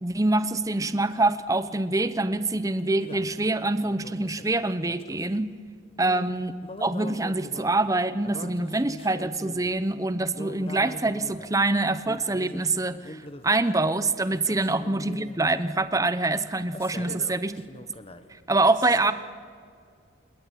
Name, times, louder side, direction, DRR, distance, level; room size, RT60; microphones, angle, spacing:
voice 1, 0.0-5.5 6.0-6.5 6.8-17.5 18.5-19.1, right 2 dB, 15° right, 13 dB, 0.8 m, -25 dB
sound 1, 2.8-3.4 3.8-5.5 6.6-7.8 8.2-9.8 10.3-11.6 12.0-12.7 13.0-13.7 14.3-15.7 16.7-17.3 17.5-18.3, left 1 dB, 30° left, 1.2 m, -42 dB
voice 2, 6.0-6.3 17.0-17.4 18.7-19.1, right 1 dB, 75° right, 6 dB, 2.5 m, -41 dB
28.0 x 20.5 x 8.3 m, 2.2 s
head